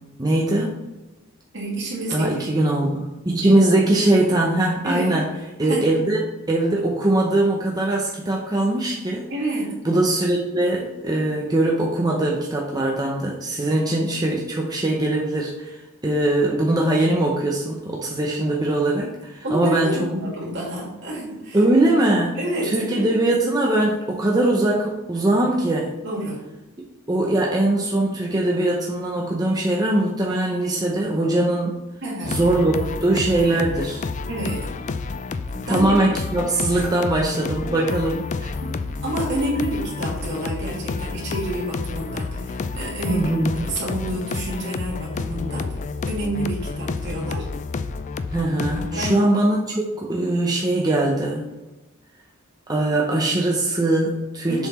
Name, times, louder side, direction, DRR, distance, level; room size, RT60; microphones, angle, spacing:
voice 1, 0.2-0.7 2.1-5.2 5.6-6.2 6.5-9.2 9.8-20.0 21.5-25.9 27.1-31.8 32.3-34.1 35.7-38.5 43.1-43.6 48.3-51.5 52.7-54.7, right 1 dB, 20° right, -2 dB, 0.7 m, -21 dB
voice 2, 1.5-2.4 4.8-5.2 5.6-6.1 9.3-9.8 19.4-21.6 22.3-23.1 26.0-26.4 32.0-32.4 34.3-34.7 35.5-36.0 38.6-38.7 39.0-45.8 46.1-47.5 48.9-49.3 54.5-54.7, right 1 dB, 60° right, -4 dB, 2.4 m, -28 dB
sound 1, 32.2-49.1, left 4 dB, 35° left, 0.3 m, -30 dB
7.0 x 4.1 x 4.2 m, 1.1 s
head